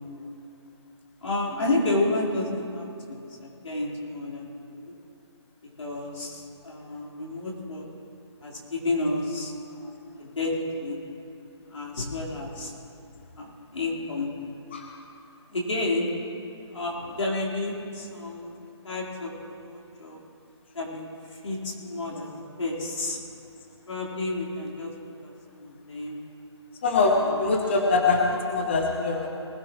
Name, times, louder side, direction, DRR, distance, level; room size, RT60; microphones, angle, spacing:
voice 1, 1.2-4.9 5.8-7.8 8.4-10.5 10.8-11.0 11.7-12.7 13.4-14.3 15.5-16.1 16.7-18.5 18.8-20.2 20.7-22.3 22.6-23.2 23.9-24.9 25.2-26.2 27.2-27.5, left 2 dB, 90° left, -4 dB, 4.3 m, -31 dB
voice 2, 26.8-29.3, left 3 dB, 25° left, 1 dB, 0.8 m, -23 dB
20.0 x 15.5 x 3.1 m, 2.6 s
hypercardioid pair, 175°, 15 cm